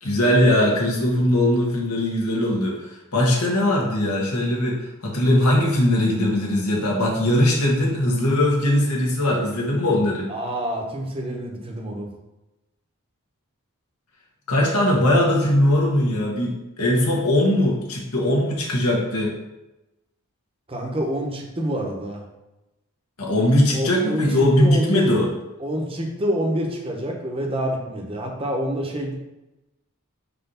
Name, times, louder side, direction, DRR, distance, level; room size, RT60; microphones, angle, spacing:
voice 1, 0.0-4.8 5.0-10.3 14.5-19.3 23.2-25.3, left 1 dB, 85° left, -2 dB, 1.7 m, -20 dB
voice 2, 10.3-12.1 20.7-22.3 23.7-25.3 25.6-29.1, equal, 25° right, 0 dB, 1.0 m, -27 dB
5.8 x 3.2 x 5.7 m, 0.97 s
head